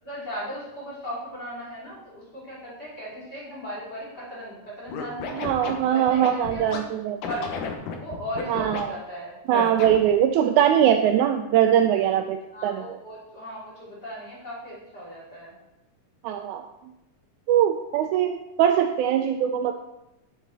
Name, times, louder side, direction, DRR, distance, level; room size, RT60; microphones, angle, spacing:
voice 1, 0.0-5.5 5.9-6.8 7.2-7.6 7.9-9.4 12.5-15.6, equal, 30° left, -7 dB, 3.3 m, -37 dB
Scratching (performance technique), 4.9-6.8 7.2-8.8 9.5-10.1, left 6 dB, 75° left, 2.6 m, -32 dB
voice 2, 5.3-7.2 8.5-8.9 9.5-12.4 12.6-12.8 16.2-16.7 17.5-19.7, right 10 dB, 80° right, 5 dB, 1.9 m, -21 dB
10.5 x 7.4 x 4.1 m, 0.90 s
omnidirectional pair, 3.7 m